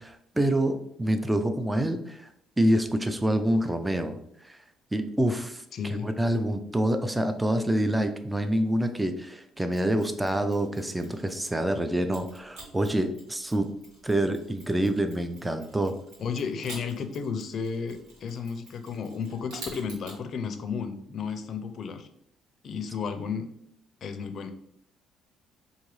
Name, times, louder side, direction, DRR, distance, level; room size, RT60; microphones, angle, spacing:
voice 1, 0.0-2.3 2.6-4.2 4.4-4.6 4.9-13.7 14.0-15.9, right 1 dB, 10° right, 8 dB, 0.4 m, -27 dB
voice 2, 5.7-6.1 16.2-22.1 22.6-23.5 24.0-24.5, left 6 dB, 50° left, 8 dB, 0.5 m, -33 dB
Mechanisms, 9.7-11.6 12.1-20.2, right 2 dB, 90° right, 1.6 m, -49 dB
4.9 x 2.7 x 3.1 m, 0.73 s
cardioid pair, 110°, 0 cm